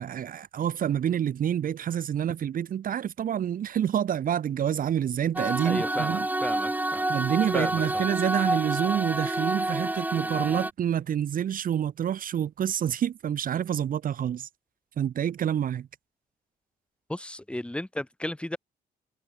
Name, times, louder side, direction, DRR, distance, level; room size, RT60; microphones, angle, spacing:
voice 1, 0.0-6.3 7.1-14.5 15.0-15.9, right 9 dB, 60° right, 1.8 m, -28 dB
sound 1, 5.4-10.7, right 1 dB, 10° right, 2.5 m, -28 dB
voice 2, 5.6-7.1 7.5-8.1 17.1-18.6, left 1 dB, 5° left, 1.8 m, -34 dB
cardioid pair, 90°, 16 cm